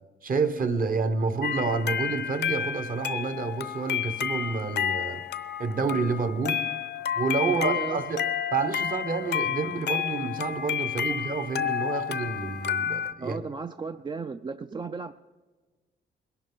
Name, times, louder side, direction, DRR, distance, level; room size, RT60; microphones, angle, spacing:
voice 1, 0.2-5.2 5.6-6.6 7.1-8.2 8.5-13.4, right 4 dB, 45° right, 10 dB, 1.1 m, -29 dB
sound 1, 1.4-13.1, left 8 dB, 60° left, 0.6 m, -30 dB
voice 2, 7.5-8.0 13.2-15.1, right 4 dB, 25° right, 10 dB, 0.4 m, -34 dB
20.5 x 11.5 x 3.9 m, 1.4 s
cardioid pair, 85°, 20 cm